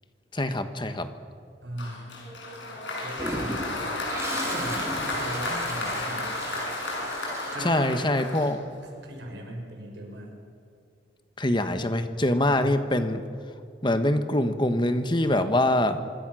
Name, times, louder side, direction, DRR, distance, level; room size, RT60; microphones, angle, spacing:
voice 1, 0.3-1.1 7.6-8.6 11.4-13.2 13.8-16.0, left 1 dB, 25° left, 9 dB, 1.4 m, -24 dB
voice 2, 1.6-2.1 3.0-3.8 4.5-6.3 7.5-8.2 9.0-10.4 12.5-12.9, right 1 dB, 65° right, 1 dB, 6.2 m, -38 dB
Applause, 1.8-8.9, left 2 dB, 65° left, 6.3 m, -32 dB
Toilet flush, 3.2-8.2, right 1 dB, 15° right, 3.7 m, -36 dB
26.0 x 24.0 x 6.4 m, 2.3 s
head